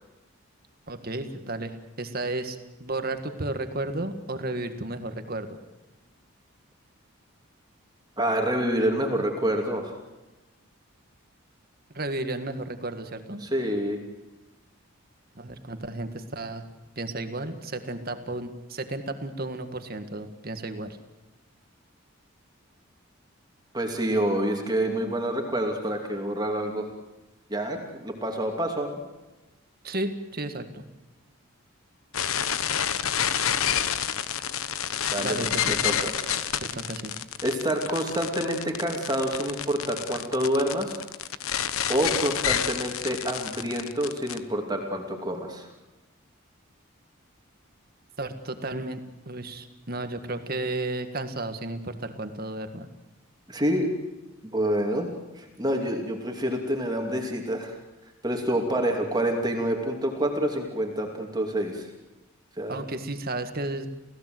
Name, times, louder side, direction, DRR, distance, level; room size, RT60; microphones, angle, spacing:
voice 1, 0.9-5.6 11.9-13.4 15.4-16.6 17.0-21.0 29.8-30.8 35.2-35.8 36.6-37.1 48.2-49.0 49.3-52.9 62.7-63.9, right 2 dB, 45° right, 8 dB, 1.9 m, -33 dB
voice 2, 8.2-9.9 13.4-14.0 23.7-26.9 27.5-29.0 35.1-36.5 37.4-41.0 41.9-45.7 53.5-53.9 54.4-55.1 55.4-57.7 58.2-61.9 62.6-62.8, right 1 dB, 20° right, 2 dB, 2.7 m, -27 dB
sound 1, 32.1-44.4, left 9 dB, 80° left, 1.1 m, -29 dB
29.0 x 16.5 x 7.9 m, 1.1 s
head